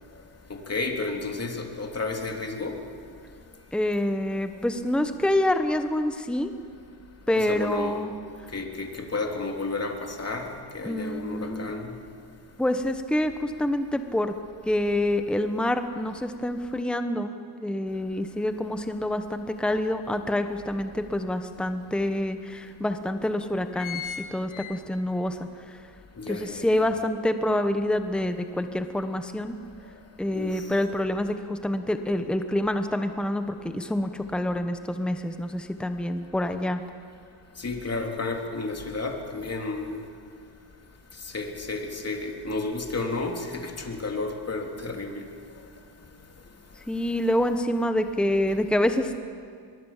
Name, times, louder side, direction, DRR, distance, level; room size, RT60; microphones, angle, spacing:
voice 1, 0.5-2.8 7.4-8.0 8.5-11.9 26.2-26.8 30.3-30.6 37.6-40.0 41.2-45.2, left 3 dB, 30° left, 2 dB, 3.2 m, -32 dB
voice 2, 3.7-6.5 7.3-8.1 10.8-11.7 12.6-14.4 14.6-17.3 17.6-24.0 24.3-25.4 25.7-25.8 26.3-29.6 30.2-36.8 46.9-49.2, left 1 dB, ahead, 8 dB, 1.2 m, -27 dB
sound 1, 19.5-19.6 20.1-21.3 21.9-22.0 22.2-22.3 23.0-23.2 23.5-25.3 25.7-25.8, left 9 dB, 80° left, 1.7 m, -38 dB
24.0 x 22.0 x 7.4 m, 2.2 s
cardioid pair, 100°, 47 cm